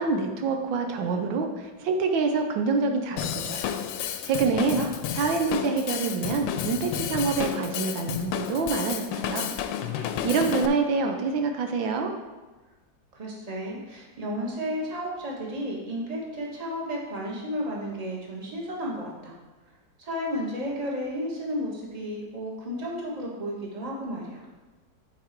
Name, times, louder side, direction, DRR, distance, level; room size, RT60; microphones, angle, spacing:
voice 1, 0.0-3.7 4.2-4.8 5.1-9.5 10.0-12.1, right 4 dB, 85° right, 4 dB, 1.5 m, -26 dB
Drum kit / Drum, 3.2-10.7, left 9 dB, 80° left, 1.3 m, -31 dB
voice 2, 4.5-4.9 13.1-19.3 20.0-24.4, equal, 20° right, -3 dB, 1.4 m, -33 dB
9.3 x 4.7 x 4.5 m, 1.2 s
omnidirectional pair, 2.0 m